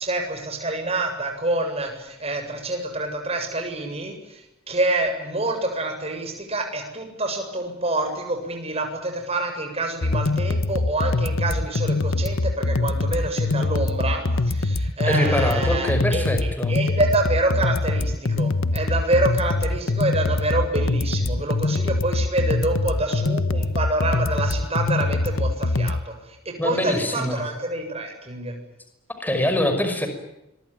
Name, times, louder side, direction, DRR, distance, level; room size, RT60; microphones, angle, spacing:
voice 1, 0.0-16.3 16.7-28.6, right 2 dB, 30° right, 4 dB, 7.7 m, -27 dB
sound 1, 10.0-26.0, left 2 dB, 70° left, 1.1 m, -23 dB
voice 2, 15.0-16.7 26.6-27.4 29.2-30.1, left 1 dB, 10° left, 6 dB, 5.6 m, -24 dB
26.0 x 23.5 x 9.1 m, 0.90 s
head